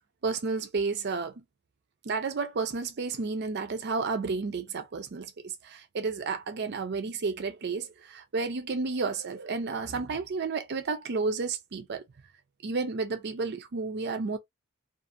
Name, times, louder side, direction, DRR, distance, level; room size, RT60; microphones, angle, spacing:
voice 1, 0.2-1.4 2.0-12.0 12.6-14.4, right 4 dB, 55° right, 0.5 m, -31 dB
2.5 x 2.5 x 2.6 m
head